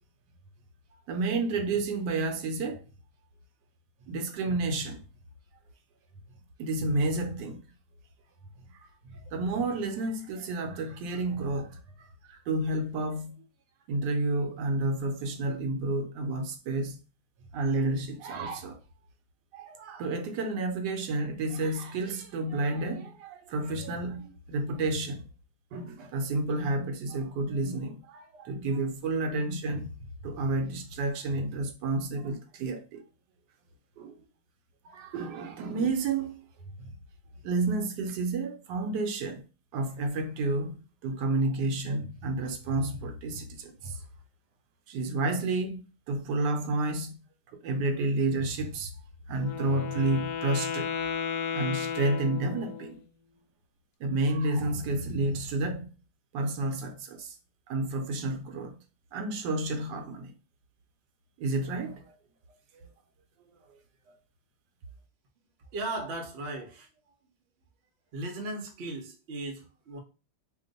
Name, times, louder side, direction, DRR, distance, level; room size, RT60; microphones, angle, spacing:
voice 1, 1.1-2.8 4.1-5.0 6.6-7.6 8.7-13.4 13.9-17.0 17.5-18.8 19.5-25.2 25.7-29.9 30.2-33.0 34.0-34.2 34.8-36.4 36.8-36.9 37.4-39.4 39.7-44.0 44.9-47.2 47.6-48.9 49.3-50.9 51.5-53.0 54.0-55.9 56.3-57.3 57.7-58.8 59.1-60.3 61.4-62.1 62.7-62.9, right 2 dB, 80° right, 1.2 m, -30 dB
Wind instrument woodwind instrument, 49.3-53.0, left 7 dB, 75° left, 1.1 m, -34 dB
voice 2, 65.6-66.9 68.1-70.0, right 2 dB, 55° right, 0.7 m, -37 dB
2.9 x 2.1 x 3.8 m
omnidirectional pair, 1.9 m